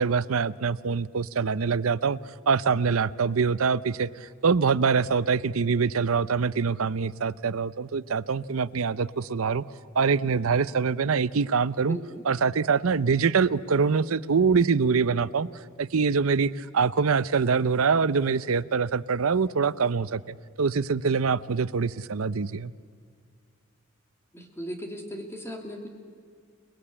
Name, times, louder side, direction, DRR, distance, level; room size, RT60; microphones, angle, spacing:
voice 1, 0.0-2.2 2.5-4.1 4.4-9.6 9.9-12.0 12.2-15.5 15.8-22.7, right 5 dB, 85° right, 16 dB, 0.6 m, -24 dB
voice 2, 11.9-12.2 24.3-25.9, equal, 10° left, 3 dB, 2.7 m, -37 dB
29.5 x 20.0 x 8.7 m, 2.1 s
head